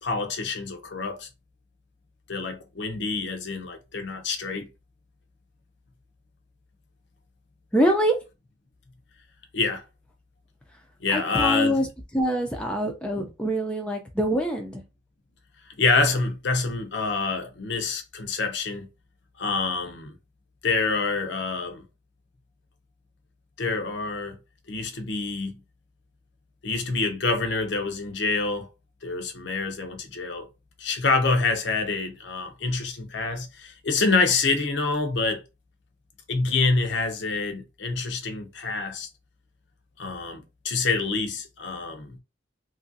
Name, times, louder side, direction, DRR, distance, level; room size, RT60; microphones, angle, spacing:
voice 1, 0.0-1.3 2.3-4.7 9.5-9.8 11.0-11.8 15.8-18.9 19.4-20.1 20.6-21.8 23.6-24.4 24.7-25.5 26.6-28.7 29.0-30.5 30.8-35.4 36.3-39.1 40.0-42.2, left 4 dB, 65° left, 0.6 m, -26 dB
voice 2, 7.7-8.2 11.1-11.9 12.1-14.8, equal, 5° left, 0.4 m, -24 dB
2.8 x 2.5 x 2.6 m
head